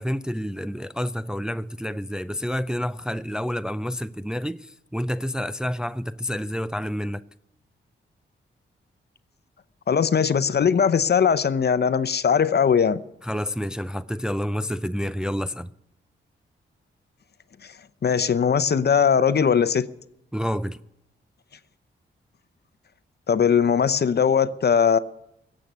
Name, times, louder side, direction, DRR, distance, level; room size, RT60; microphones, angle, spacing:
voice 1, 0.0-7.2 13.2-15.7 20.3-20.8, equal, 5° right, 0.4 m, -29 dB
voice 2, 9.9-13.0 18.0-19.9 23.3-25.0, left 7 dB, 50° left, 0.8 m, -20 dB
16.5 x 7.7 x 9.5 m
cardioid pair, 55°, 21 cm